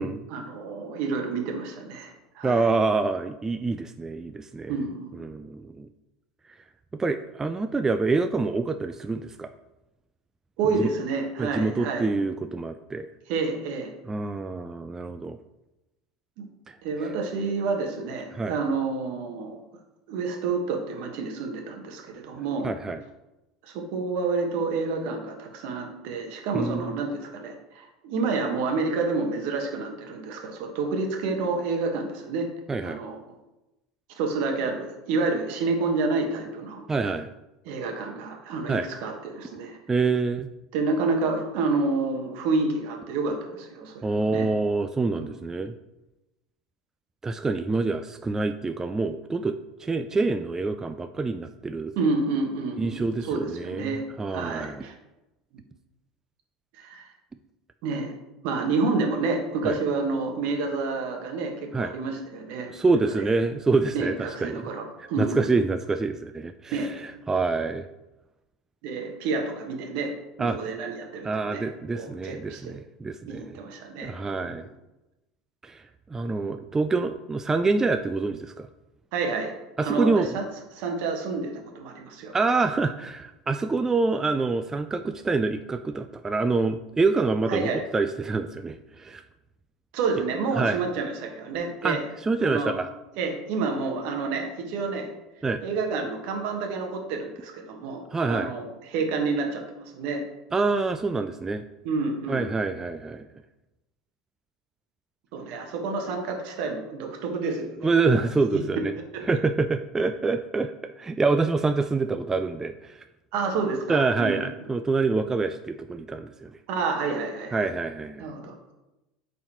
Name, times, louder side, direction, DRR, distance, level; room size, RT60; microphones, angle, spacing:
voice 1, 0.3-2.6 4.7-5.1 10.6-12.1 13.3-13.9 16.4-16.5 16.8-19.6 20.1-22.7 23.7-32.5 32.8-33.2 34.2-36.8 37.6-39.8 40.7-44.5 45.1-45.3 51.9-54.0 54.3-54.9 56.8-57.0 57.8-58.1 58.4-62.7 63.1-63.3 63.9-65.5 66.7-66.9 68.8-70.1 70.4-71.6 71.9-72.8 73.3-74.1 74.4-74.5 79.1-79.5 79.8-80.4 80.7-82.3 87.5-87.8 89.9-92.0 92.4-92.8 93.2-95.1 95.6-100.2 101.8-102.5 105.3-107.9 108.5-108.6 109.1-109.2 113.3-114.4 116.7-117.6 118.2-118.7, right 4 dB, 65° right, 3 dB, 1.4 m, -29 dB
voice 2, 2.4-4.7 5.2-5.9 6.9-9.5 10.8-10.9 11.4-13.1 14.1-15.4 16.7-16.8 18.3-18.5 22.6-23.0 26.5-26.9 32.7-33.0 36.9-37.3 38.7-38.9 39.9-40.5 44.0-45.7 47.2-51.9 52.8-54.9 59.6-59.8 61.7-61.9 62.7-64.6 65.2-66.9 67.3-67.9 70.4-70.6 71.2-73.6 74.0-74.6 75.6-75.8 76.1-78.7 79.8-80.3 82.3-89.2 90.6-90.8 91.8-92.0 92.2-92.9 95.4-95.6 98.1-98.5 100.5-101.6 102.3-103.3 107.8-108.9 109.3-113.0 113.9-116.5 117.5-118.3, right 3 dB, 15° right, 8 dB, 0.3 m, -26 dB
8.6 x 4.1 x 3.0 m, 0.99 s
hypercardioid pair, 85°, 3 cm